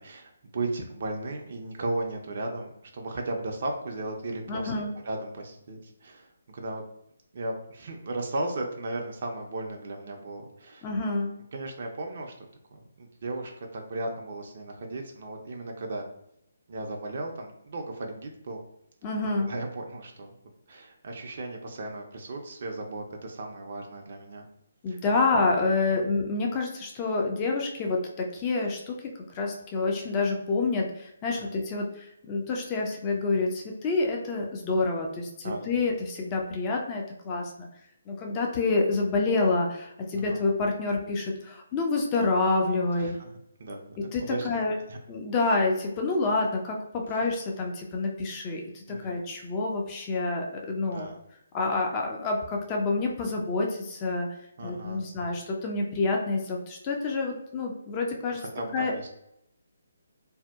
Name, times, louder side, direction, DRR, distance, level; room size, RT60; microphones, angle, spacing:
voice 1, 0.0-4.7 5.0-6.8 7.3-10.9 11.5-16.1 16.7-18.6 19.3-20.3 20.7-24.5 24.9-25.0 25.9-26.0 31.3-31.5 35.4-35.8 40.1-40.4 43.0-43.3 43.6-44.6 44.9-45.0 48.9-49.2 50.8-51.2 54.6-55.0 58.4-59.1, right 2 dB, 45° right, 1 dB, 0.4 m, -36 dB
voice 2, 4.5-4.9 10.8-11.3 19.0-19.5 24.8-29.1 29.3-37.7 38.1-43.2 44.1-44.7 45.1-51.1 51.5-54.3 54.6-58.4 58.7-58.9, left 3 dB, 25° left, 0 dB, 0.4 m, -28 dB
2.6 x 2.1 x 2.3 m, 0.77 s
figure-of-eight pair, 140°, 0 cm